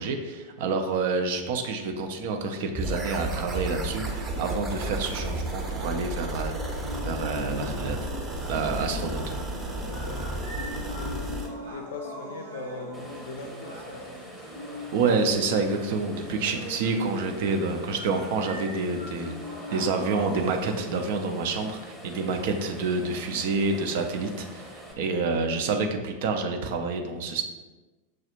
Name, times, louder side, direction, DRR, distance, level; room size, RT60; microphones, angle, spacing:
voice 1, 0.0-6.7 7.0-8.0 8.5-9.2 14.9-19.3 19.7-27.4, right 4 dB, 50° right, 4 dB, 0.5 m, -28 dB
sound 1, 2.7-11.5, right 1 dB, 20° right, 0.7 m, -32 dB
sound 2, 4.7-20.7, left 2 dB, 75° right, 0.9 m, -41 dB
voice 2, 9.8-10.7 10.9-14.4, left 2 dB, 60° left, 5 dB, 0.5 m, -41 dB
sound 3, 12.9-24.9, right 1 dB, 5° left, 0.9 m, -45 dB
6.2 x 2.4 x 2.8 m, 1.2 s
figure-of-eight pair, 90°, 0 cm